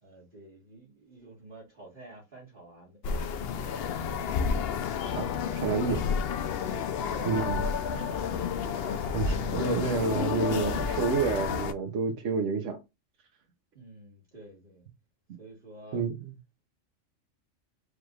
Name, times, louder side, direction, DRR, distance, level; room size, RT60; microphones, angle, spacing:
voice 1, 0.0-3.0 3.4-4.0 4.5-4.7 5.3-6.2 6.7-8.2 13.7-14.8 15.4-16.0, right 2 dB, 40° right, 1.9 m, -49 dB
sound 1, 3.0-11.7, left 6 dB, 60° left, 0.7 m, -30 dB
voice 2, 5.6-6.0 7.3-7.6 9.1-12.8 15.9-16.3, right 5 dB, 70° right, 1.2 m, -29 dB
5.0 x 3.2 x 2.4 m
omnidirectional pair, 1.3 m